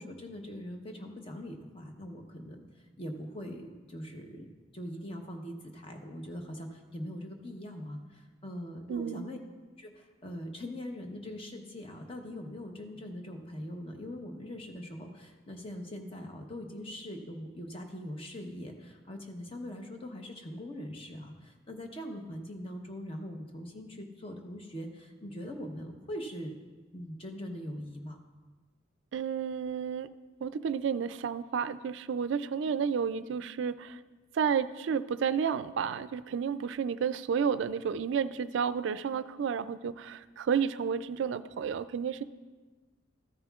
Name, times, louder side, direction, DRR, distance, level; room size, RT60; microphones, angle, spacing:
voice 1, 0.0-2.6 3.0-9.4 9.8-26.6 26.9-28.2, equal, 30° left, 3 dB, 0.9 m, -42 dB
voice 2, 8.9-9.3 29.1-30.1 30.4-34.0 34.3-42.2, right 7 dB, 65° right, 13 dB, 0.3 m, -31 dB
14.0 x 9.5 x 2.4 m, 1.3 s
head